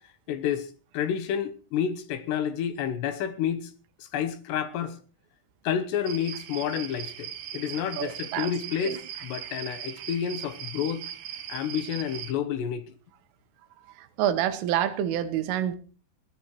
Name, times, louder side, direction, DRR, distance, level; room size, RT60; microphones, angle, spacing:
voice 1, 0.3-3.7 4.0-5.0 5.6-11.0 11.5-12.9, left 8 dB, 75° left, 2.9 m, -30 dB
sound 1, 6.1-12.3, right 10 dB, 70° right, 2.8 m, -39 dB
voice 2, 8.0-8.5 8.8-9.0 14.2-15.8, right 11 dB, 90° right, 3.9 m, -27 dB
21.5 x 15.0 x 3.1 m
omnidirectional pair, 5.6 m